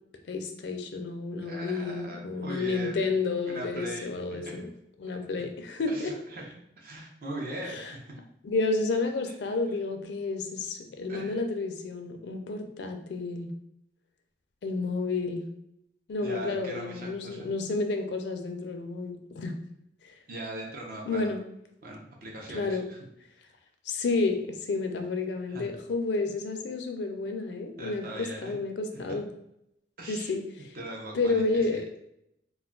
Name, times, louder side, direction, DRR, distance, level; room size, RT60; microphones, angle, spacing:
voice 1, 0.3-4.7 5.0-6.1 7.6-7.9 8.4-13.5 14.6-15.5 16.1-19.5 20.0-20.2 21.0-21.4 22.5-22.9 23.9-29.3 30.1-30.7 31.1-31.9, left 3 dB, 70° left, 5 dB, 0.4 m, -31 dB
voice 2, 1.4-2.9 3.4-4.5 5.9-8.2 9.3-9.4 11.1-11.4 16.2-17.5 20.3-21.3 21.8-23.0 25.5-25.7 27.8-28.6 29.1-29.2 30.0-30.3 30.7-31.4 31.7-31.8, right 1 dB, 55° right, -1 dB, 0.6 m, -40 dB
2.3 x 2.1 x 3.6 m, 0.78 s
head